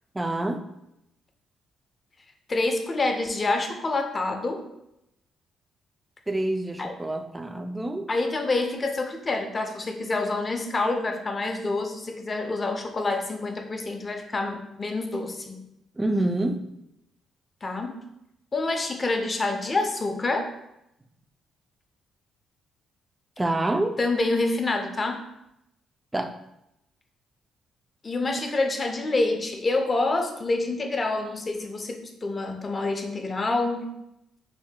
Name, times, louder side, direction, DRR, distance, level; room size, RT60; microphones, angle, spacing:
voice 1, 0.1-0.7 6.3-8.1 16.0-16.7 23.4-24.0 26.1-26.4, right 1 dB, 15° right, 7 dB, 0.4 m, -27 dB
voice 2, 2.5-4.7 6.8-6.9 8.1-15.6 17.6-18.0 18.5-20.5 24.0-25.2 28.0-33.9, left 2 dB, 30° left, 5 dB, 0.6 m, -27 dB
6.0 x 2.7 x 2.2 m, 0.84 s
cardioid pair, 90°, 0 cm